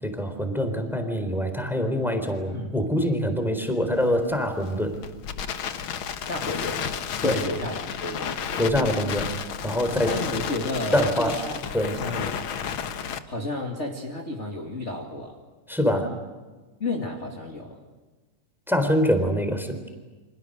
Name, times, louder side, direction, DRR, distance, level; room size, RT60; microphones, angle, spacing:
voice 1, 0.0-4.9 7.2-7.4 8.6-9.3 9.6-10.1 10.9-11.3 11.7-12.0 15.7-16.1 18.7-19.8, equal, ahead, 7 dB, 3.4 m, -24 dB
Crackle, 3.9-13.2, left 7 dB, 55° left, 1.5 m, -32 dB
voice 2, 6.3-6.8 7.2-8.4 9.9-11.6 12.0-12.4 13.3-15.4 16.8-17.8, left 2 dB, 25° left, 1 dB, 2.4 m, -32 dB
30.0 x 26.5 x 6.6 m, 1.3 s
omnidirectional pair, 3.6 m